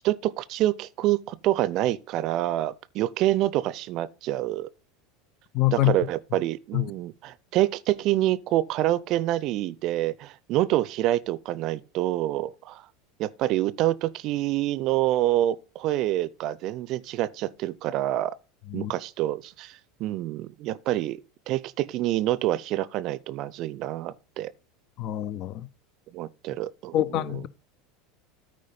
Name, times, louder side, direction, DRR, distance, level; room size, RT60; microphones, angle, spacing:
voice 1, 0.0-4.7 5.7-12.8 13.2-18.3 18.7-21.2 21.5-24.5 26.1-27.4, right 14 dB, 45° right, 0.6 m, -27 dB
voice 2, 5.5-5.9 6.7-6.8 18.7-18.9 25.0-25.7 26.9-27.5, left 15 dB, 45° left, 0.6 m, -25 dB
8.9 x 4.7 x 5.4 m
figure-of-eight pair, 75°, 0 cm